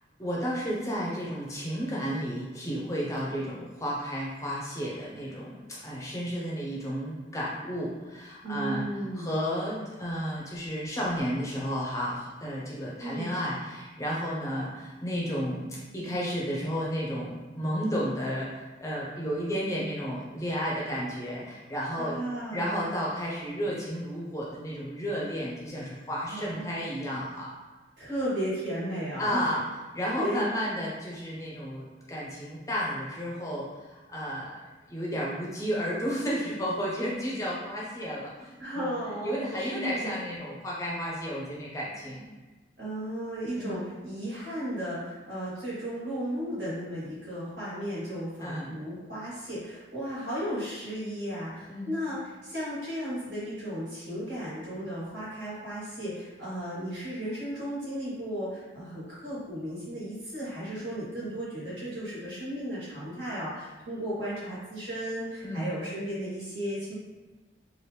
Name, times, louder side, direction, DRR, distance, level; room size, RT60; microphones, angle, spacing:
voice 1, 0.2-15.7 15.9-22.2 22.5-27.5 29.2-29.6 29.9-34.6 34.9-38.9 39.2-42.2 43.6-43.8 48.4-48.7 51.7-52.0 65.4-65.7, equal, 15° left, -5 dB, 0.5 m, -32 dB
voice 2, 8.4-9.3 13.0-13.3 21.9-22.7 26.2-26.8 28.0-29.5 30.2-30.4 38.6-40.2 42.8-66.9, equal, 70° right, -8 dB, 1.4 m, -35 dB
2.9 x 2.4 x 3.2 m, 1.2 s
head